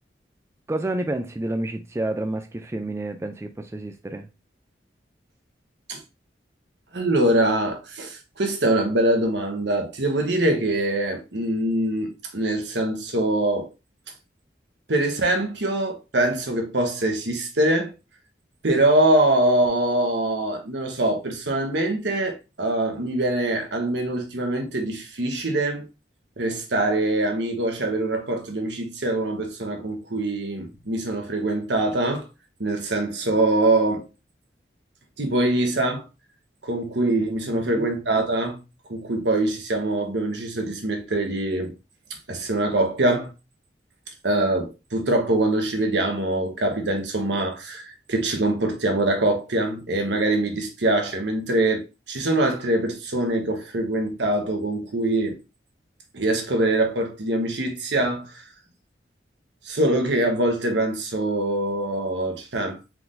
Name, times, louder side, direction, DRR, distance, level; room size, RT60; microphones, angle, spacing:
voice 1, 0.7-4.3 37.5-37.9, right 1 dB, 15° right, 0.3 m, -29 dB
voice 2, 6.9-13.7 14.9-17.9 18.6-25.9 26.4-32.3 32.6-34.1 35.2-36.1 36.6-38.6 38.9-41.7 42.3-43.3 44.2-55.4 56.1-58.4 59.6-62.8, right 1 dB, 80° right, 1.2 m, -23 dB
4.5 x 3.8 x 2.6 m
head